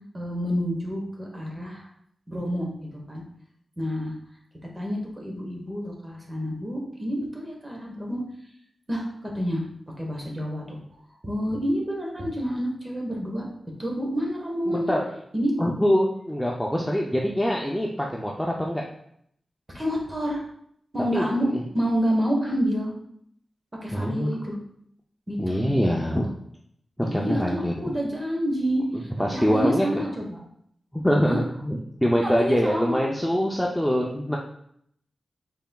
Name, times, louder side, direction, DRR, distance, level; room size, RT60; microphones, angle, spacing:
voice 1, 0.1-1.9 2.3-3.2 3.8-4.1 4.7-8.2 8.9-9.6 10.0-10.8 11.2-13.5 13.8-14.9 15.3-15.5 19.7-20.4 20.9-21.5 21.7-22.9 23.8-24.6 25.3-25.6 27.0-30.4 31.2-31.4 32.2-33.0, equal, 20° right, -1 dB, 1.0 m, -28 dB
voice 2, 14.7-15.1 15.6-18.8 21.1-21.6 23.9-24.3 25.4-26.3 27.1-27.7 28.9-29.9 30.9-34.4, equal, 5° left, -2 dB, 0.4 m, -24 dB
5.6 x 4.1 x 2.2 m, 0.69 s
wide cardioid pair, 175°, 0 cm